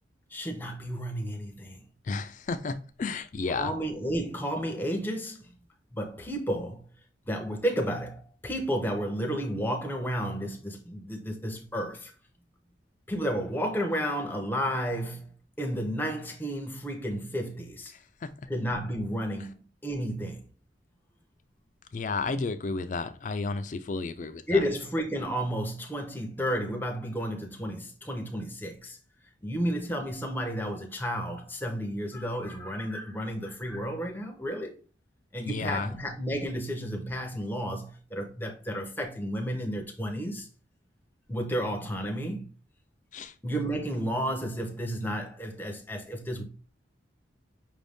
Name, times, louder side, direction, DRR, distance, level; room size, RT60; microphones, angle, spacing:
voice 1, 0.3-1.8 3.5-5.5 5.9-6.8 7.3-12.1 13.1-15.3 15.6-17.9 18.5-20.5 24.5-29.0 29.4-34.7 35.3-40.5 41.3-42.5 43.4-46.4, equal, 10° left, 0.7 m, -32 dB
voice 2, 2.1-3.7 21.9-24.4 35.4-35.9 43.1-43.3, left 3 dB, 40° left, 0.4 m, -32 dB
5.4 x 2.6 x 3.5 m
head